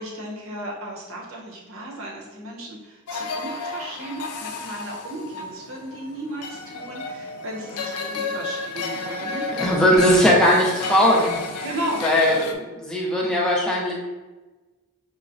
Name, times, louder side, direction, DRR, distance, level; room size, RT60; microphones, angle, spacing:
voice 1, 0.0-9.5 9.7-10.0 11.6-12.0, right 1 dB, 65° right, -2 dB, 0.8 m, -35 dB
sound 1, 3.1-12.5, left 3 dB, 90° left, 0.4 m, -31 dB
voice 2, 9.6-11.4 12.0-13.9, equal, 5° left, -4 dB, 0.6 m, -19 dB
5.6 x 2.1 x 2.5 m, 1.2 s
head